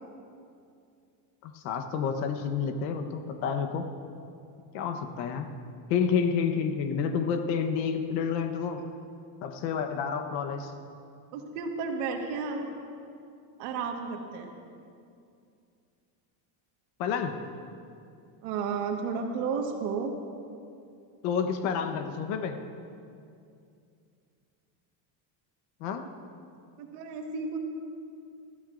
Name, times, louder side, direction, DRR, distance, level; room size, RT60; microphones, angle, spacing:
voice 1, 1.4-3.8 4.7-5.5 5.9-8.8 9.4-10.7 17.0-17.4 21.2-22.6 25.8-26.0, left 6 dB, 80° left, 6 dB, 1.2 m, -29 dB
voice 2, 11.3-12.7 13.6-14.5 18.4-20.2 26.8-27.6, right 5 dB, 85° right, 2 dB, 1.6 m, -32 dB
21.0 x 14.0 x 2.6 m, 2.5 s
cardioid pair, 165°, 50 cm